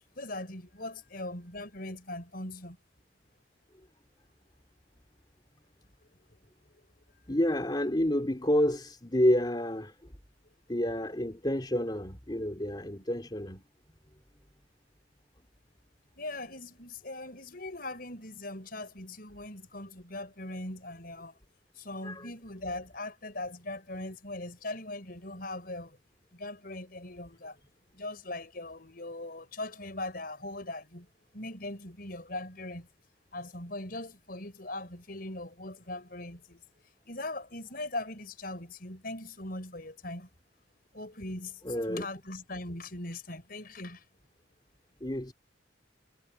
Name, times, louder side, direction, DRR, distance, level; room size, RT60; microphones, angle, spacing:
voice 1, 0.2-2.8 6.3-6.4 16.2-21.4 21.8-26.0 26.3-27.6 27.9-31.1 31.3-32.9 33.3-36.6 37.1-40.3 40.9-44.1, left 2 dB, 50° left, 5.5 m, -40 dB
voice 2, 7.3-10.1 10.7-13.6 22.0-22.3 41.6-42.0 45.0-45.3, left 1 dB, 25° left, 3.0 m, -29 dB
head